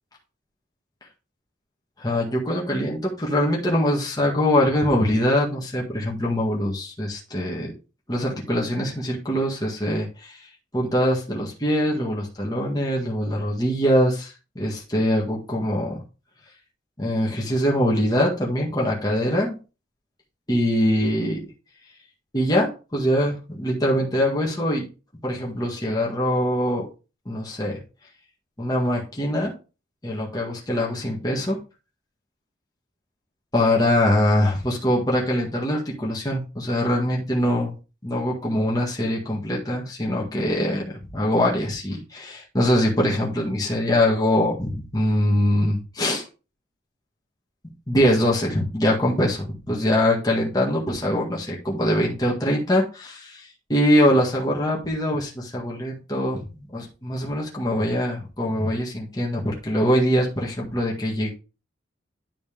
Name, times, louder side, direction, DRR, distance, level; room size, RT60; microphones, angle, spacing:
voice 1, 2.0-7.7 8.1-10.4 10.7-16.0 17.0-19.6 20.5-21.4 22.3-24.9 25.2-26.9 27.3-27.8 28.6-29.5 30.0-31.6 33.5-37.7 38.0-40.8 41.1-46.3 47.9-61.3, equal, 20° left, -3 dB, 1.7 m, -23 dB
10.5 x 4.3 x 3.6 m, 0.32 s
head